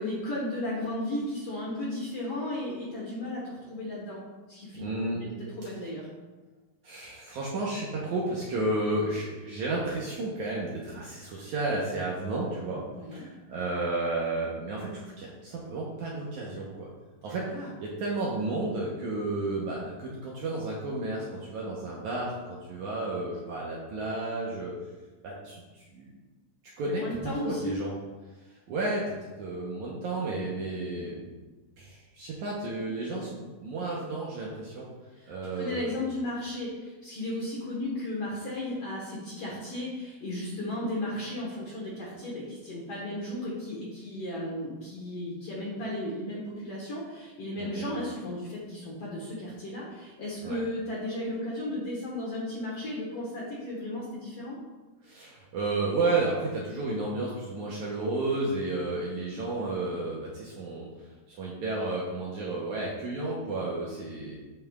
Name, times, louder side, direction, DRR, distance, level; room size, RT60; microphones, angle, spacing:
voice 1, 0.0-4.2 4.5-4.8 5.2-6.1 12.9-13.2 17.5-17.7 26.8-27.8 35.2-54.6, left 1 dB, 55° left, -5 dB, 1.8 m, -35 dB
voice 2, 4.8-5.3 6.8-12.8 13.1-16.9 17.2-24.7 25.2-25.6 25.9-26.1 26.8-27.9 28.7-31.3 31.8-34.9 35.3-35.9 47.6-47.8 50.4-50.6 55.0-60.9 61.3-64.4, right 2 dB, 70° right, -4 dB, 1.9 m, -32 dB
12.0 x 5.8 x 2.4 m, 1.2 s
omnidirectional pair, 4.4 m